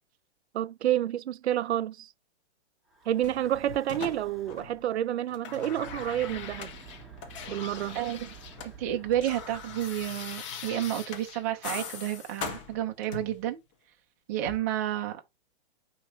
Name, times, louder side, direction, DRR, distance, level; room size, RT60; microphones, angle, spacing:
voice 1, 0.5-2.1 3.1-6.7 7.5-8.0, right 12 dB, 75° right, 0.6 m, -29 dB
Breathing / Wind, 2.9-4.8 5.7-11.1, right 5 dB, ahead, 1.2 m, -51 dB
sound 1, 3.2-4.9 5.2-8.7 9.0-13.4 14.4-14.6, left 6 dB, 30° left, 1.4 m, -41 dB
voice 2, 7.9-8.3 8.6-13.6 14.3-15.2, right 12 dB, 15° right, 0.6 m, -31 dB
6.9 x 3.0 x 5.1 m
hypercardioid pair, 175°, 33 cm